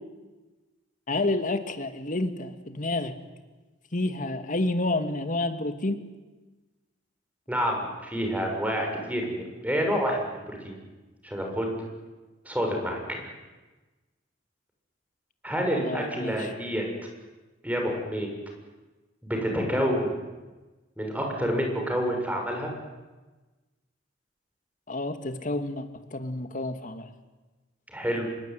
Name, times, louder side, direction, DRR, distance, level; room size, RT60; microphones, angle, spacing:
voice 1, 1.1-3.1 3.9-6.0 15.8-16.5 24.9-27.1, left 2 dB, 45° left, 8 dB, 2.4 m, -29 dB
voice 2, 7.5-10.8 11.2-11.8 12.5-13.2 15.4-16.9 17.6-18.3 19.2-20.2 21.0-22.7 27.9-28.3, equal, 10° right, 2 dB, 7.2 m, -28 dB
26.0 x 23.0 x 9.6 m, 1.2 s
head